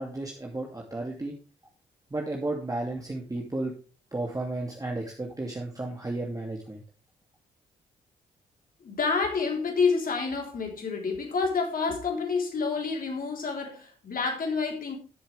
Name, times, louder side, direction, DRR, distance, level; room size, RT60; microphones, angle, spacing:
voice 1, 0.0-1.3 2.1-3.7 4.1-6.8, right 2 dB, 20° right, 2.6 m, -33 dB
voice 2, 8.8-15.0, left 4 dB, 55° left, 3.8 m, -28 dB
13.5 x 7.2 x 3.4 m
supercardioid pair, 50°, 17 cm